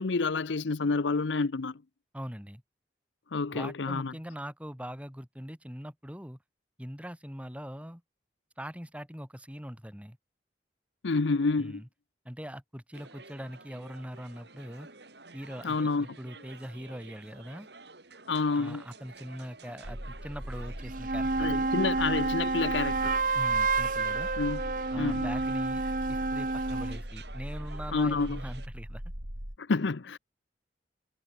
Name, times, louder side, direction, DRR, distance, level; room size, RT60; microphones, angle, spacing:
voice 1, 0.0-1.7 3.3-4.1 11.0-11.8 15.6-16.1 18.3-18.8 21.4-23.2 24.4-25.3 27.9-28.4 29.6-30.2, left 3 dB, 85° left, 0.7 m, -29 dB
voice 2, 2.1-2.6 3.5-6.4 6.8-8.0 8.6-10.2 11.6-11.9 12.2-14.9 15.3-17.7 18.5-21.7 23.3-24.3 24.9-25.8 26.1-29.0, equal, 5° right, 6.1 m, -42 dB
sound 1, 12.9-28.7, right 3 dB, 70° right, 5.7 m, -51 dB
sound 2, 19.8-29.6, equal, 85° right, 6.2 m, -40 dB
sound 3, 20.8-27.0, right 3 dB, 45° right, 1.2 m, -29 dB
head